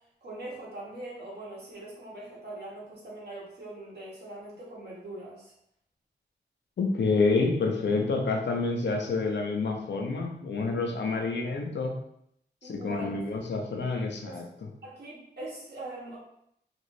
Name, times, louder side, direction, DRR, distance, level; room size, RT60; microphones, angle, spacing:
voice 1, 0.2-5.5 11.1-11.2 12.6-13.1 14.3-14.4 14.8-16.2, right 2 dB, 65° right, -6 dB, 1.4 m, -42 dB
voice 2, 6.8-11.9 12.6-14.4, left 3 dB, 75° left, 2 dB, 0.6 m, -28 dB
3.0 x 2.6 x 3.2 m, 0.73 s
wide cardioid pair, 85°, 19 cm